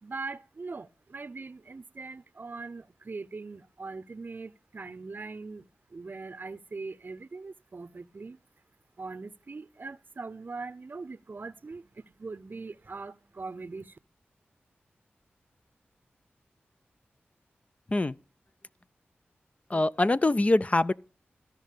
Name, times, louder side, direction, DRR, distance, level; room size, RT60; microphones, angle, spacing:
voice 1, 0.0-8.4 9.0-14.0, right 3 dB, 50° right, 0.6 m, -41 dB
voice 2, 19.7-20.9, left 2 dB, 35° left, 0.5 m, -24 dB
13.0 x 5.2 x 8.4 m
cardioid pair, 50°, 4 cm